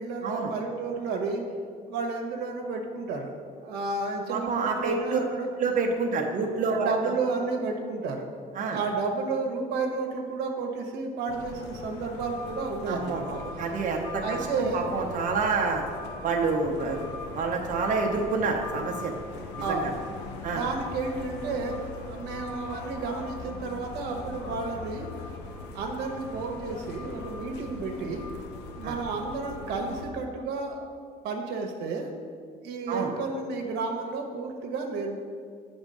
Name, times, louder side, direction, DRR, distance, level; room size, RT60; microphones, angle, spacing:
voice 1, 0.0-1.4 1.9-3.3 3.6-5.5 6.6-8.3 8.7-13.4 14.2-14.9 19.6-20.0 20.4-25.1 25.7-28.3 28.8-30.8 31.2-32.1 32.6-35.2, right 3 dB, 85° right, 2 dB, 1.0 m, -31 dB
voice 2, 4.3-5.2 5.6-7.1 8.6-8.8 12.9-15.8 16.2-17.0 17.3-19.1 19.7-19.8 20.4-20.6 28.8-29.0 32.9-33.1, right 4 dB, 50° right, 1 dB, 0.8 m, -28 dB
sound 1, 11.3-30.1, left 3 dB, 85° left, 0.7 m, -40 dB
8.0 x 3.5 x 5.4 m, 2.1 s
cardioid pair, 110°, 17 cm